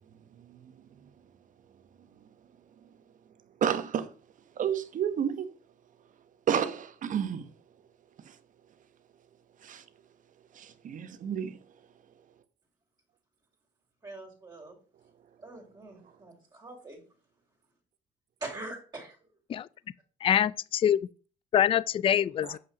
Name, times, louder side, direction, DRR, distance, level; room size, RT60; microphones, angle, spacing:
voice 1, 3.6-4.1 4.6-5.5 6.5-7.5 8.3-8.4 9.6-9.8 10.5-11.6 22.4-22.6, right 8 dB, 50° right, 1.2 m, -31 dB
voice 2, 14.0-14.8 15.4-17.0 18.4-19.3, right 2 dB, 25° right, 3.2 m, -43 dB
voice 3, 20.2-21.0 21.5-22.6, left 10 dB, 30° left, 0.4 m, -25 dB
8.0 x 5.7 x 6.1 m
cardioid pair, 110°, 17 cm